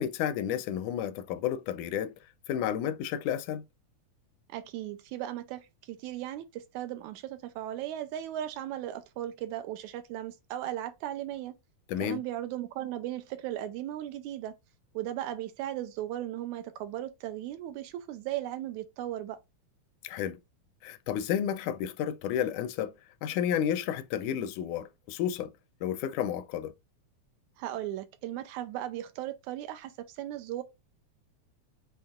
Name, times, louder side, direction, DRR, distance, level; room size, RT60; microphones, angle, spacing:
voice 1, 0.0-2.1 2.5-3.6 11.9-12.2 20.0-20.4 20.8-22.9 23.2-25.5 25.8-26.7, left 9 dB, 85° left, 2.0 m, -31 dB
voice 2, 4.5-11.5 12.0-14.5 14.9-19.4 27.6-30.6, right 13 dB, 80° right, 1.9 m, -37 dB
7.1 x 3.1 x 2.4 m
omnidirectional pair, 3.5 m